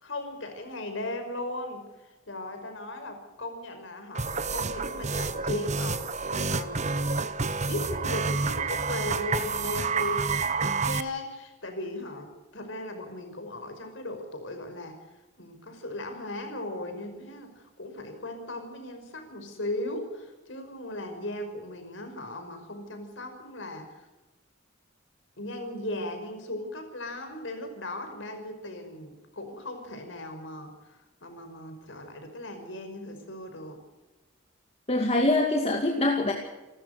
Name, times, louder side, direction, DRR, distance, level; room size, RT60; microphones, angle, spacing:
voice 1, 0.0-7.1 7.6-15.0 15.4-24.1 25.4-33.8, left 1 dB, 65° left, 6 dB, 5.4 m, -37 dB
sound 1, 4.1-11.0, right 4 dB, 35° right, 1.1 m, -29 dB
voice 2, 34.9-36.3, left 2 dB, 30° left, 2 dB, 2.3 m, -24 dB
29.0 x 13.5 x 6.7 m, 1.1 s
head